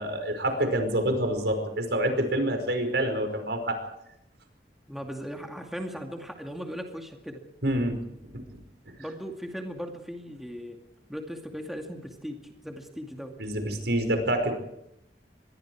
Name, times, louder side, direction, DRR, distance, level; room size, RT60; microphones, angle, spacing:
voice 1, 0.0-3.8 7.6-8.0 8.3-8.4 13.4-14.5, right 1 dB, 75° right, 6 dB, 5.3 m, -27 dB
voice 2, 4.9-7.4 9.0-10.8 11.1-12.4 12.6-13.4, equal, ahead, 2 dB, 2.4 m, -38 dB
25.5 x 21.5 x 4.8 m, 0.80 s
head